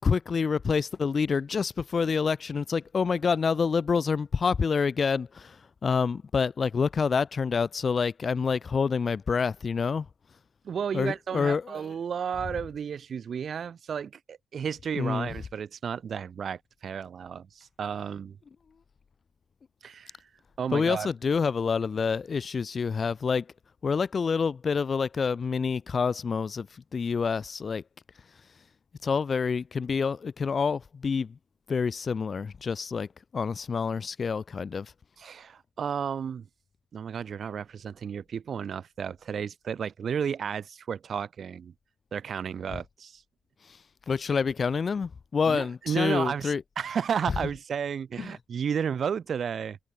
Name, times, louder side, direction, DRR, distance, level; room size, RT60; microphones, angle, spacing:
voice 1, 0.0-5.6 5.8-10.1 10.9-11.8 15.0-15.3 20.7-23.4 23.8-26.7 26.9-27.8 29.0-31.3 31.7-33.1 33.3-34.9 44.1-46.6 48.2-48.3, left 5 dB, 40° left, 0.6 m, -27 dB
voice 2, 10.6-18.4 19.8-20.1 20.6-21.1 35.2-36.5 36.9-41.7 42.1-43.2 45.4-49.8, right 7 dB, 50° right, 0.7 m, -32 dB
cardioid pair, 90°, 0 cm